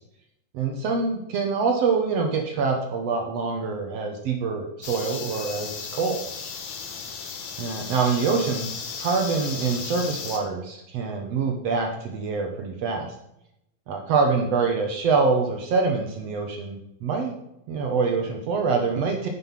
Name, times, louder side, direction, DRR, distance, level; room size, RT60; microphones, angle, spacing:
voice 1, 0.5-6.2 7.6-8.7 9.0-13.1 13.9-17.3 17.7-19.3, right 4 dB, 75° right, 3 dB, 1.5 m, -25 dB
sound 1, 4.8-10.4, left 6 dB, 60° left, 2.2 m, -35 dB
9.8 x 7.5 x 5.7 m, 0.82 s
omnidirectional pair, 4.5 m